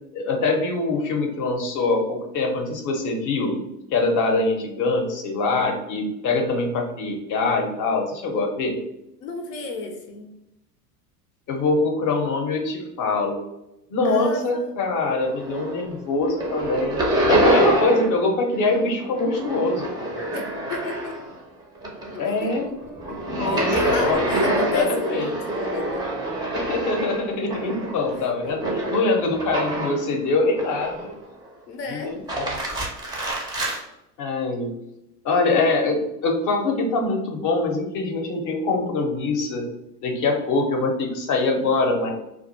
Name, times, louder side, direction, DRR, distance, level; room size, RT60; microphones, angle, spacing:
voice 1, 0.1-8.8 11.5-13.4 13.9-20.2 22.2-22.7 23.3-24.4 24.7-25.3 26.5-31.1 31.8-32.5 34.2-34.7 35.2-39.6 40.0-42.1, left 3 dB, 40° left, 3 dB, 0.6 m, -24 dB
voice 2, 9.2-10.3 14.0-14.8 20.3-21.2 22.1-23.2 23.5-26.0 31.7-32.1, left 2 dB, 80° left, 3 dB, 0.6 m, -32 dB
sound 1, 15.2-15.9 16.2-18.2 18.5-21.4 21.8-30.1 30.6-31.3 32.1-33.8, right 1 dB, 10° right, 0.4 m, -26 dB
2.4 x 2.1 x 2.6 m, 0.87 s
hypercardioid pair, 90°, 49 cm